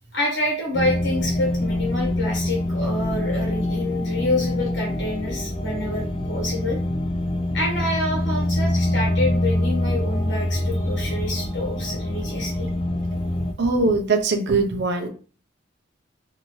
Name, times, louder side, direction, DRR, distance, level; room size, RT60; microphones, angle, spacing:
voice 1, 0.1-6.8 7.5-12.7, left 1 dB, 65° left, 0 dB, 1.4 m, -27 dB
sound 1, 0.7-13.5, left 1 dB, 25° left, 0.4 m, -25 dB
voice 2, 13.6-15.1, right 3 dB, 60° right, 5 dB, 0.6 m, -21 dB
2.7 x 2.7 x 3.0 m, 0.39 s
head